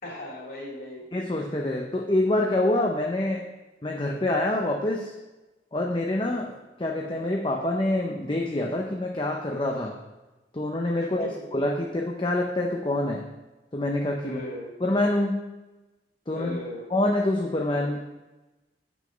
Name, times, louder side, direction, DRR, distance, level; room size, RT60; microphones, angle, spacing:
voice 1, 0.0-1.0 11.2-11.5 14.2-14.7 16.3-16.9, left 1 dB, 55° left, -4 dB, 3.2 m, -37 dB
voice 2, 1.1-3.5 3.8-5.1 5.7-6.5 6.8-9.9 10.5-13.3 13.7-14.4 14.8-15.4 16.3-16.6 16.9-18.0, left 1 dB, 25° left, 0 dB, 0.7 m, -26 dB
8.2 x 6.2 x 5.1 m, 1.1 s
head